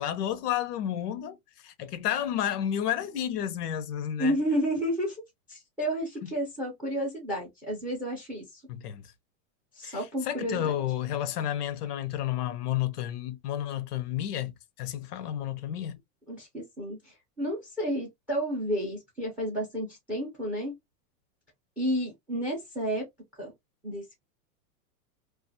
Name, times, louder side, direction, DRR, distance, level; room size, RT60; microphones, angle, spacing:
voice 1, 0.0-1.4 1.6-4.4 8.7-9.1 9.8-16.0, left 11 dB, 85° left, 0.7 m, -31 dB
voice 2, 4.2-5.2 5.5-8.6 9.7-10.7 16.3-20.8 21.8-23.1 23.4-23.5 23.8-24.2, equal, 5° right, 0.3 m, -31 dB
2.3 x 2.3 x 2.5 m
supercardioid pair, 140°, 45 cm